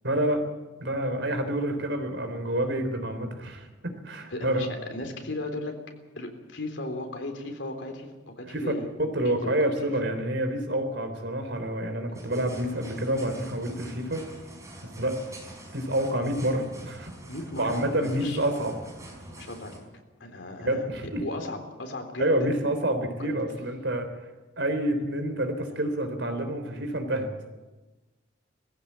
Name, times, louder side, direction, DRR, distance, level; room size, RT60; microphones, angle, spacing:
voice 1, 0.0-0.4 0.8-4.7 8.4-8.7 9.0-14.2 15.0-15.2 15.7-17.1 17.6-18.8 20.6-21.3 22.2-24.1 24.6-27.3, right 1 dB, 75° right, 6 dB, 3.5 m, -28 dB
voice 2, 4.3-5.8 6.2-8.9 9.3-9.7 17.3-18.4 19.4-19.7 20.2-20.9 21.2-22.5 23.2-23.3, left 1 dB, 90° left, 4 dB, 3.6 m, -36 dB
sound 1, 12.1-19.8, right 1 dB, 15° right, 4.8 m, -45 dB
19.5 x 15.5 x 8.6 m, 1.2 s
head